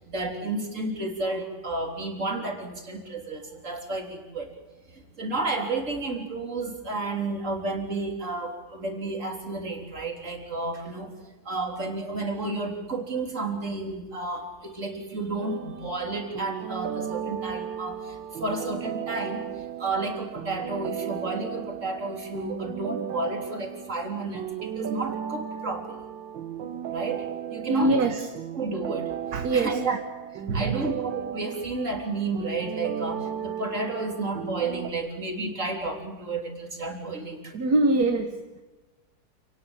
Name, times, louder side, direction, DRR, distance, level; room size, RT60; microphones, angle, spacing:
voice 1, 0.1-4.5 4.9-11.1 11.5-19.5 19.8-26.0 26.9-27.3 27.5-28.1 28.6-29.1 29.5-30.0 30.5-37.5, right 3 dB, 40° right, 3 dB, 3.9 m, -31 dB
sound 1, 15.4-34.9, right 9 dB, 90° right, 1.9 m, -35 dB
voice 2, 27.7-28.3 29.3-29.9 30.5-30.9 37.5-38.6, right 2 dB, 60° right, 6 dB, 1.8 m, -24 dB
29.0 x 19.0 x 7.3 m, 1.1 s
omnidirectional pair, 1.9 m